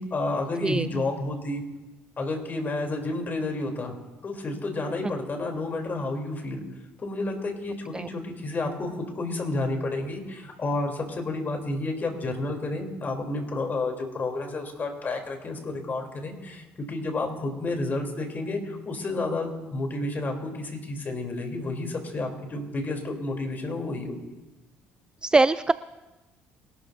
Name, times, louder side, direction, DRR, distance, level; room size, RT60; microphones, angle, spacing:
voice 1, 0.0-1.6 2.2-3.9 4.2-6.6 7.0-24.3, left 2 dB, 40° left, 3 dB, 3.4 m, -30 dB
voice 2, 25.2-25.7, right 3 dB, 15° right, 15 dB, 0.4 m, -21 dB
23.0 x 12.5 x 2.7 m, 1.1 s
hypercardioid pair, 65°, 5 cm